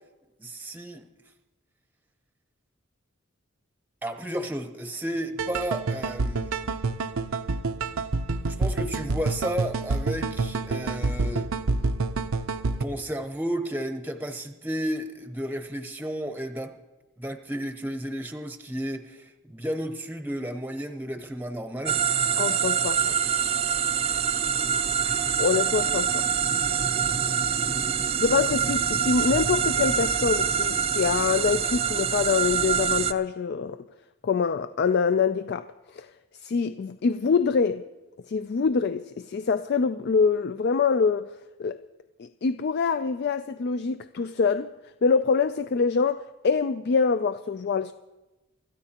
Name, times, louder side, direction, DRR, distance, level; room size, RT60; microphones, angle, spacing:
voice 1, 0.4-1.0 4.0-6.6 8.5-11.5 12.8-16.8 17.2-22.0 24.0-24.2 25.0-25.4 27.9-28.1, equal, 10° right, 0.8 m, -33 dB
sound 1, 5.4-12.8, right 3 dB, 80° right, 0.6 m, -28 dB
sound 2, 21.9-33.1, right 7 dB, 30° right, 0.4 m, -25 dB
voice 2, 22.4-23.2 25.4-26.2 28.2-33.8 34.2-35.7 35.9-36.1 36.4-37.9 38.3-41.3 41.6-41.8 42.2-44.7 45.0-47.9, left 5 dB, 50° left, 0.4 m, -25 dB
26.0 x 13.5 x 2.9 m
head